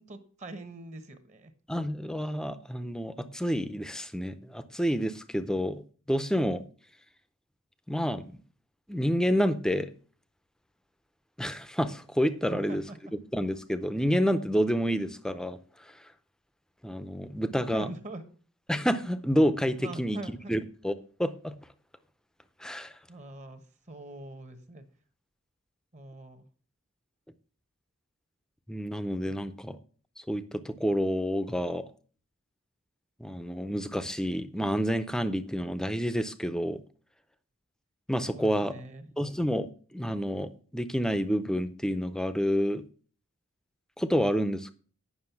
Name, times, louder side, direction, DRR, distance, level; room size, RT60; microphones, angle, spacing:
voice 1, 0.0-1.5 12.5-13.0 17.5-18.2 19.8-20.5 23.1-23.6 23.9-24.8 25.9-26.5 29.2-29.4 38.3-39.1, right 1 dB, 30° right, 9 dB, 1.1 m, -43 dB
voice 2, 1.7-5.8 6.1-6.6 7.9-8.4 8.9-9.9 11.4-12.8 13.3-15.6 16.8-17.9 18.7-20.9 21.2-21.5 22.6-22.9 28.7-29.8 30.3-31.8 33.2-36.8 38.1-38.7 39.2-42.8 44.0-44.7, equal, 5° left, 12 dB, 0.5 m, -29 dB
9.7 x 6.1 x 5.9 m, 0.42 s
head